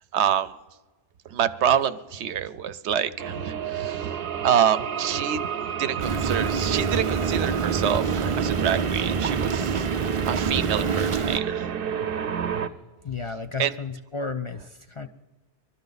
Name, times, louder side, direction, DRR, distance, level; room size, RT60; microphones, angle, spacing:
voice 1, 0.1-0.5 1.3-5.4 5.8-9.8 10.3-11.7 13.6-13.7, right 9 dB, 90° right, 14 dB, 0.9 m, -26 dB
sound 1, 3.2-12.7, right 8 dB, 60° right, 0.8 m, -31 dB
sound 2, 6.0-11.4, right 5 dB, 40° right, 0.5 m, -26 dB
voice 2, 13.0-15.1, left 4 dB, 40° left, 8 dB, 0.4 m, -33 dB
23.5 x 13.0 x 4.0 m, 1.2 s
omnidirectional pair, 1.1 m